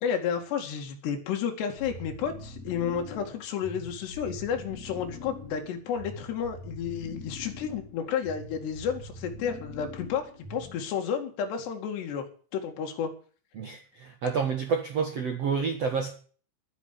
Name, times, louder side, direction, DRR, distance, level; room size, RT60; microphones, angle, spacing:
voice 1, 0.0-12.2 12.5-13.1, left 7 dB, 65° left, 3 dB, 4.1 m, -31 dB
sound 1, 1.8-11.0, left 2 dB, 35° left, 5.3 m, -43 dB
voice 2, 13.5-16.1, right 5 dB, 80° right, 3 dB, 1.4 m, -29 dB
11.5 x 10.0 x 8.5 m, 0.42 s
omnidirectional pair, 5.7 m